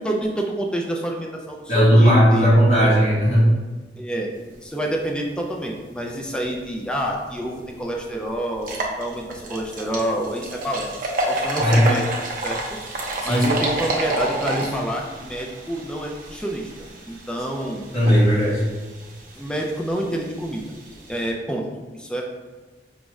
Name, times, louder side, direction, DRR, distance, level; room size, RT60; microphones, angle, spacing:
voice 1, 0.0-2.9 4.0-11.0 11.3-12.0 12.4-12.6 13.2-17.9 19.4-20.6 21.1-21.6 21.9-22.2, right 1 dB, 5° left, 0 dB, 0.3 m, -28 dB
voice 2, 1.7-3.5 11.6-11.9 13.2-13.5 17.9-18.6, equal, 40° left, -8 dB, 1.5 m, -16 dB
sound 1, 7.3-7.4 7.8-7.9 8.5-21.3, right 1 dB, 50° right, 0.6 m, -30 dB
5.1 x 2.3 x 3.1 m, 1.3 s
head